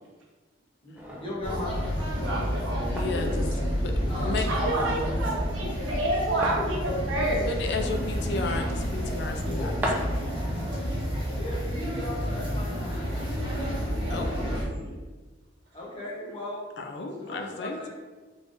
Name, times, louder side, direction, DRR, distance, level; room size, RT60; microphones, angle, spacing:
voice 1, 0.8-2.1 4.1-4.5 9.5-9.7 11.3-13.2 15.7-16.7 17.2-17.9, left 1 dB, 25° left, -5 dB, 0.9 m, -37 dB
sound 1, 0.9-12.8, equal, 10° right, 0.4 m, -40 dB
sound 2, 1.4-14.6, equal, 25° right, 1.0 m, -30 dB
voice 2, 2.1-3.4 9.2-9.6 14.0-14.9, right 1 dB, 65° right, -6 dB, 1.2 m, -37 dB
voice 3, 2.9-3.5 3.8-3.9 4.2-4.5 7.5-9.7 14.1-14.3 16.8-17.9, left 3 dB, 60° left, 3 dB, 0.4 m, -33 dB
voice 4, 4.5-7.5 9.0-9.1, right 1 dB, 85° right, -3 dB, 0.9 m, -28 dB
3.7 x 3.4 x 2.5 m, 1.3 s
head